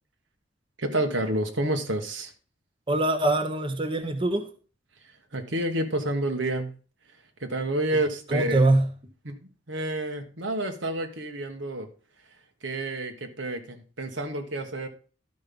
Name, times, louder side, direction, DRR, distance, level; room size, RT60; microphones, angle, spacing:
voice 1, 0.8-2.3 5.0-6.7 7.4-8.7 9.2-11.9 12.6-14.9, right 1 dB, 75° right, 1.5 m, -29 dB
voice 2, 2.9-4.5 8.3-8.9, right 2 dB, 25° right, 1.1 m, -23 dB
12.0 x 5.5 x 5.4 m
head